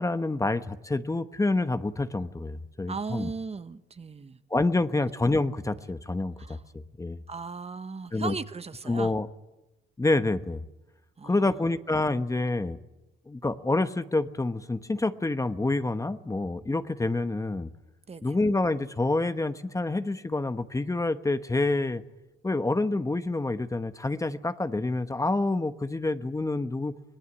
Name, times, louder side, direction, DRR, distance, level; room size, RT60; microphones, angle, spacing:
voice 1, 0.0-3.3 4.5-7.2 8.1-8.3 8.9-9.3 10.0-10.6 11.2-12.8 13.3-17.7 18.2-22.0 22.4-26.9, left 2 dB, 15° left, 11 dB, 1.1 m, -27 dB
voice 2, 2.9-4.4 4.9-5.0 6.4-6.6 7.3-9.1 11.2-11.6 18.1-18.3, right 4 dB, 30° right, 12 dB, 1.2 m, -37 dB
25.5 x 19.0 x 9.8 m, 0.97 s
cardioid pair, 90°, 20 cm